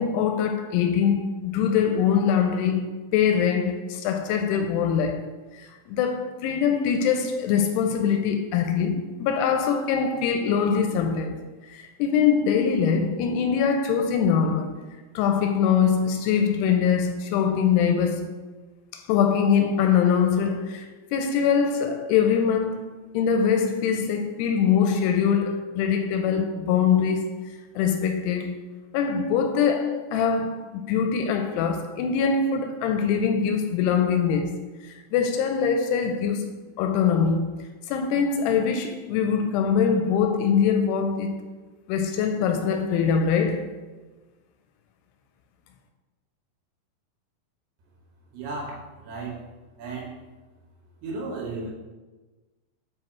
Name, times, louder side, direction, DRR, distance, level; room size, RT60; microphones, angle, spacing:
voice 1, 0.0-5.3 5.5-11.3 11.7-14.8 15.2-18.3 18.9-27.3 27.8-28.6 28.9-36.5 36.8-41.4 41.9-43.7, left 7 dB, 85° left, 2.5 m, -23 dB
voice 2, 48.3-49.4 49.8-50.1 51.0-51.7, right 3 dB, 75° right, 3.1 m, -34 dB
8.5 x 4.6 x 3.1 m
omnidirectional pair, 4.9 m